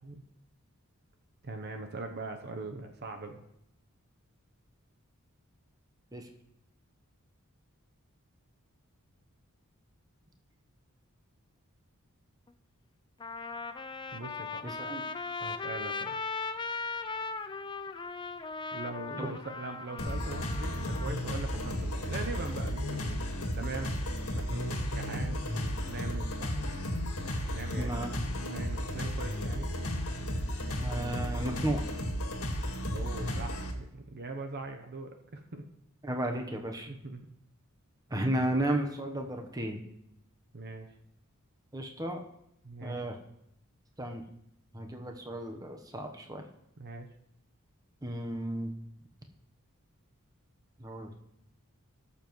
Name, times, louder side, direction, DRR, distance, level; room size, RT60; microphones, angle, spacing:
voice 1, 1.4-3.4 14.1-14.6 15.4-16.2 18.7-23.2 23.6-23.9 24.3-26.5 27.4-28.1 28.5-29.7 32.9-35.6 36.9-37.3 40.5-40.9 42.6-43.1 46.8-47.1, right 3 dB, 50° right, 5 dB, 0.8 m, -41 dB
Trumpet, 12.5-12.6 13.2-21.1, left 4 dB, 20° left, 0.4 m, -38 dB
voice 2, 14.6-15.0 19.2-19.4 27.8-28.1 30.8-31.8 36.0-36.9 38.1-39.8 41.7-42.2 42.8-43.2 44.0-44.3 44.7-46.4 48.0-48.8 50.8-51.1, right 1 dB, 15° right, 3 dB, 1.0 m, -34 dB
sound 1, 20.0-33.7, equal, 80° left, 1.8 m, -34 dB
18.5 x 7.0 x 3.1 m, 0.76 s
head